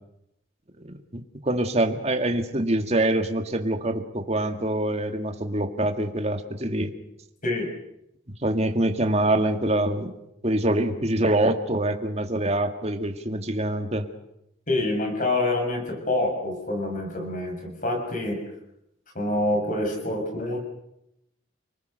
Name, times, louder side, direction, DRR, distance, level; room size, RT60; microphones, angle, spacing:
voice 1, 0.8-6.9 8.4-10.2 10.4-14.0, right 1 dB, 35° right, 6 dB, 2.0 m, -25 dB
voice 2, 14.7-18.4 19.1-20.6, left 2 dB, 45° left, 3 dB, 6.8 m, -26 dB
29.5 x 20.0 x 6.6 m, 0.82 s
head